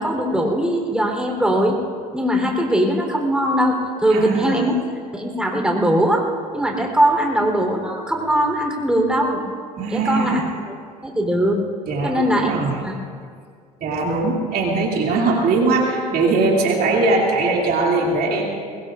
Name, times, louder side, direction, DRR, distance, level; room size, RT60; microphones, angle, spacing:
voice 1, 0.0-1.8 2.1-4.8 5.1-6.3 6.5-9.4 9.9-10.4 10.7-10.8 11.0-11.6 12.0-12.9, equal, 5° right, 1 dB, 3.6 m, -20 dB
voice 2, 4.1-4.6 9.8-10.4 11.9-12.8 13.8-18.5, right 3 dB, 50° right, -1 dB, 2.7 m, -20 dB
23.0 x 21.5 x 2.5 m, 2.2 s
hypercardioid pair, 75°, 19 cm